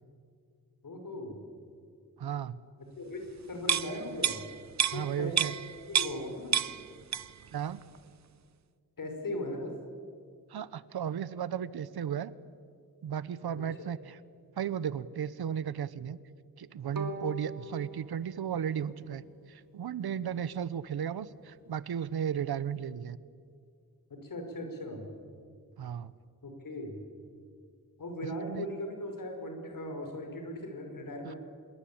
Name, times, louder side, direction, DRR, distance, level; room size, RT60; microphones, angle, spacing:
voice 1, 0.8-1.4 3.0-4.4 4.9-5.4 5.9-6.6 9.0-9.7 13.8-13.9 24.1-25.1 26.4-27.0 28.0-31.4, left 1 dB, 60° left, 4 dB, 5.4 m, -38 dB
voice 2, 2.2-2.6 4.9-5.6 7.5-7.8 10.5-12.3 13.0-14.2 14.5-16.2 16.6-19.2 19.5-23.2 25.8-26.1 28.4-28.7 31.2-31.3, right 8 dB, 85° right, 17 dB, 1.0 m, -35 dB
sound 1, 3.6-6.3 6.5-7.5 7.8-8.0, right 8 dB, 50° right, 0.7 m, -30 dB
Bowed string instrument, 16.9-20.0, right 1 dB, 65° right, 2.4 m, -43 dB
26.5 x 22.0 x 8.7 m, 2.2 s
wide cardioid pair, 145°, 37 cm